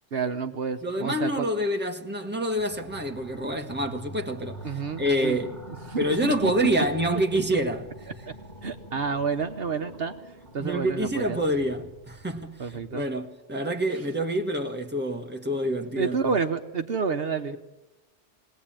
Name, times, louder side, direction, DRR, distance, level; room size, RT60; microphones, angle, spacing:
voice 1, 0.1-1.5 4.6-5.4 5.9-6.5 8.6-10.1 10.5-11.4 12.6-13.0 16.0-17.6, right 5 dB, 60° right, 1.1 m, -29 dB
voice 2, 0.8-5.6 5.9-7.9 10.6-16.2, equal, 10° right, 1.5 m, -27 dB
sound 1, 2.6-13.1, left 1 dB, 30° left, 4.8 m, -45 dB
20.5 x 19.0 x 8.9 m
omnidirectional pair, 1.2 m